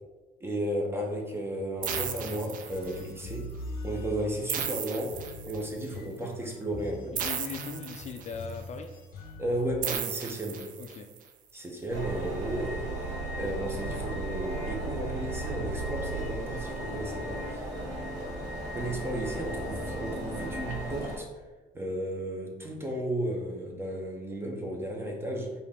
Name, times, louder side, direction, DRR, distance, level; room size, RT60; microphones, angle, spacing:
voice 1, 0.4-3.5 3.8-5.2 5.5-7.2 9.4-10.6 11.5-12.9 13.4-17.6 18.7-21.3 21.7-25.5, right 1 dB, 15° right, 0 dB, 0.9 m, -34 dB
sound 1, 1.8-9.8, left 2 dB, 60° left, 0.8 m, -42 dB
sound 2, 1.8-3.2 4.5-5.9 7.2-8.5 9.8-11.2, right 8 dB, 55° right, 0.5 m, -35 dB
voice 2, 7.1-8.9 10.8-11.1, left 6 dB, 45° left, 5 dB, 0.4 m, -39 dB
sound 3, 11.9-21.2, right 1 dB, 85° right, 1.1 m, -35 dB
4.5 x 2.7 x 3.6 m, 1.2 s
cardioid pair, 110°, 17 cm